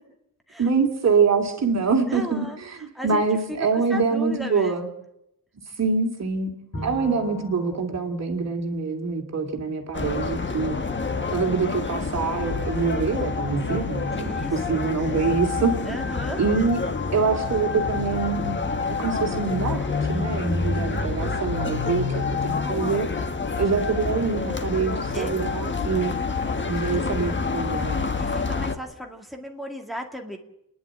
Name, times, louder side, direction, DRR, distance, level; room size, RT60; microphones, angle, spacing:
voice 1, 0.6-4.9 5.8-6.5 6.8-10.8 11.3-16.0 16.4-16.8 17.1-18.7 19.0-23.1 23.6-26.1 26.7-28.0, right 5 dB, 50° right, 3 dB, 2.8 m, -25 dB
voice 2, 2.1-4.9 6.8-7.0 14.1-14.9 15.8-16.4 25.1-25.5 28.2-30.4, equal, ahead, 3 dB, 2.2 m, -36 dB
Bowed string instrument, 6.7-10.0, equal, 45° left, 4.0 m, -40 dB
sound 1, 9.9-28.7, left 4 dB, 30° left, 1.4 m, -27 dB
29.5 x 11.0 x 8.9 m, 0.79 s
wide cardioid pair, 175°, 35 cm